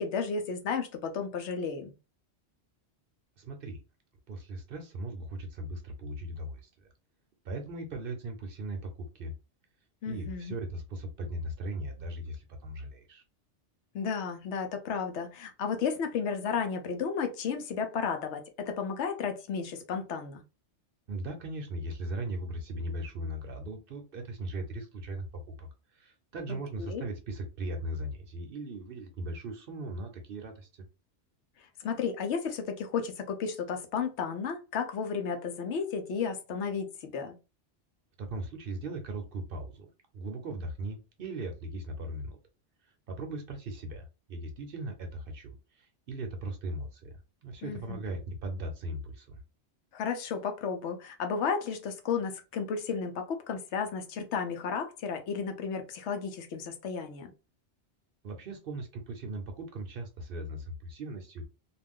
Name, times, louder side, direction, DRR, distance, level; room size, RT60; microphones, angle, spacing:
voice 1, 0.0-1.9 10.0-10.6 13.9-20.4 26.5-26.6 26.9-27.0 31.8-37.3 47.6-48.0 49.9-57.3, left 6 dB, 75° left, 0.9 m, -33 dB
voice 2, 3.4-3.8 4.3-6.9 7.4-9.3 10.1-13.2 21.1-30.7 38.2-39.9 40.1-42.4 42.8-47.1 47.4-49.4 58.2-61.4, right 1 dB, 60° right, 0.7 m, -38 dB
2.5 x 2.3 x 3.5 m
omnidirectional pair, 1.2 m